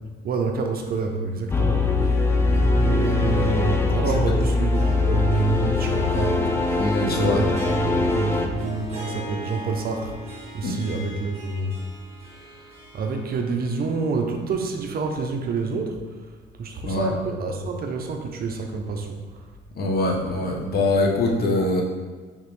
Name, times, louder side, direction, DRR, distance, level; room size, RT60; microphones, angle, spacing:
voice 1, 0.2-2.0 2.8-11.8 12.3-16.0 16.6-19.2, right 4 dB, 45° right, 4 dB, 0.5 m, -28 dB
sound 1, 1.5-8.5, left 3 dB, 10° left, 0.3 m, -22 dB
Harp, 2.0-13.9 14.2-14.3 15.2-15.3, right 3 dB, 30° right, 1.3 m, -38 dB
voice 2, 6.8-7.4 10.6-10.8 16.9-17.1 19.8-21.8, left 2 dB, 45° left, 0 dB, 0.8 m, -23 dB
3.6 x 2.9 x 3.0 m, 1.4 s
supercardioid pair, 80°, 21 cm